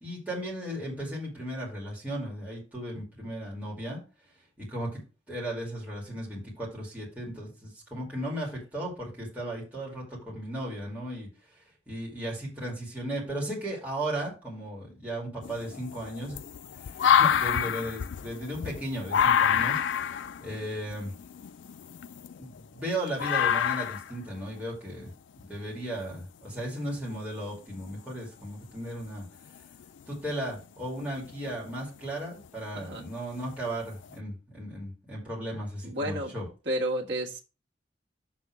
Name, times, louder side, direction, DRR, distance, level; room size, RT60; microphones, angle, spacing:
voice 1, 0.0-4.0 4.6-5.0 5.3-11.3 11.9-16.4 16.8-21.1 22.4-25.1 25.5-29.2 30.1-36.4, right 1 dB, 10° right, 2.6 m, -36 dB
sound 1, 15.4-22.8 23.2-24.1 25.4-25.5 26.8-26.9 29.6-29.8 30.3-30.6 31.2-31.8 32.4-32.5 33.5-33.6 34.0-34.1, left 8 dB, 80° left, 0.4 m, -27 dB
voice 2, 32.7-33.1 35.8-36.3 36.6-37.4, right 1 dB, 65° right, 1.5 m, -31 dB
6.3 x 3.7 x 5.8 m
head